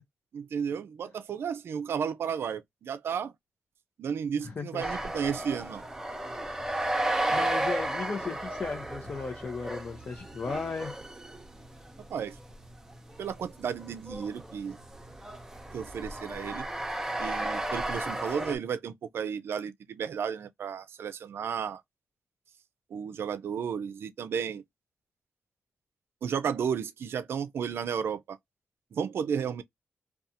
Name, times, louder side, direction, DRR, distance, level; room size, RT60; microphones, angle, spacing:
voice 1, 0.3-3.3 4.0-5.8 12.1-12.4 13.2-14.8 15.7-16.7 17.2-21.8 22.9-24.6 26.2-28.4 28.9-29.6, right 7 dB, 70° right, 0.4 m, -33 dB
voice 2, 4.4-4.8 7.3-10.9, left 4 dB, 45° left, 0.6 m, -35 dB
sound 1, 4.8-18.6, right 1 dB, 10° right, 0.7 m, -34 dB
2.4 x 2.2 x 2.7 m
cardioid pair, 75°, 4 cm